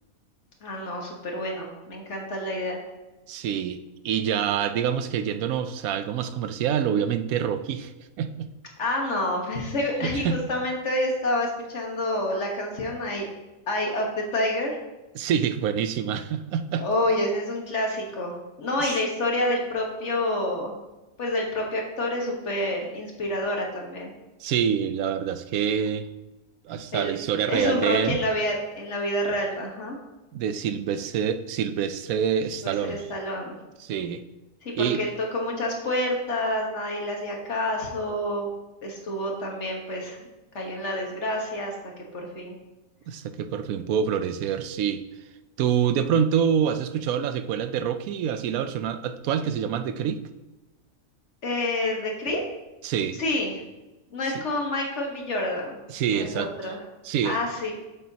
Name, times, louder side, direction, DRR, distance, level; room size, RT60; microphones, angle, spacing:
voice 1, 0.6-2.8 8.8-13.3 13.7-14.8 16.8-20.7 21.2-24.1 26.9-27.2 27.5-30.0 32.6-33.5 34.6-38.5 38.8-40.3 40.5-42.5 51.4-52.4 53.2-53.5 54.1-55.8 56.1-56.8 57.2-57.7, left 1 dB, 55° left, 0 dB, 1.6 m, -28 dB
voice 2, 3.3-7.9 8.2-8.5 10.0-10.4 15.1-16.9 18.8-18.9 24.4-26.1 26.6-28.2 30.3-33.1 33.8-34.2 34.7-35.0 43.1-45.0 45.6-50.2 52.8-53.2 54.3-54.4 55.9-56.7 57.0-57.4, right 8 dB, 85° right, 10 dB, 1.0 m, -26 dB
8.5 x 7.2 x 2.8 m, 1.1 s
omnidirectional pair, 1.5 m